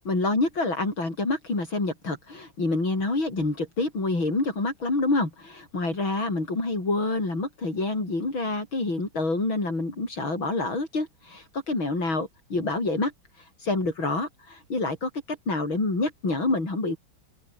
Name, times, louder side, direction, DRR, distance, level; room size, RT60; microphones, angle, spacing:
voice 1, 0.1-17.0, left 2 dB, 80° left, 7.9 m, -27 dB
omnidirectional pair, 2.1 m